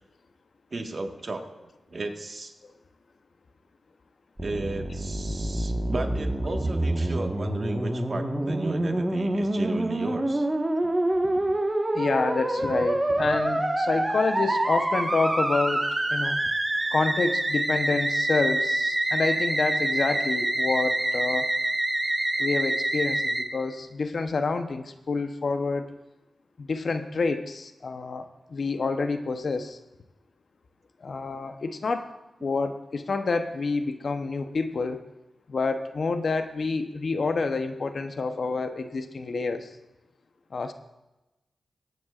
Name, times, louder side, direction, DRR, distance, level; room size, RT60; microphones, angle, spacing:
voice 1, 0.7-2.5 4.4-10.5, right 2 dB, 50° right, 4 dB, 1.5 m, -34 dB
Musical instrument, 4.4-23.4, right 1 dB, 25° right, 1.4 m, -26 dB
voice 2, 11.9-16.4 16.9-21.5 22.4-25.8 26.6-29.8 31.0-32.0 32.4-35.0 35.5-39.7 40.5-40.7, left 4 dB, 65° left, 8 dB, 0.8 m, -28 dB
20.0 x 9.3 x 2.5 m, 1.0 s
cardioid pair, 60°, 0 cm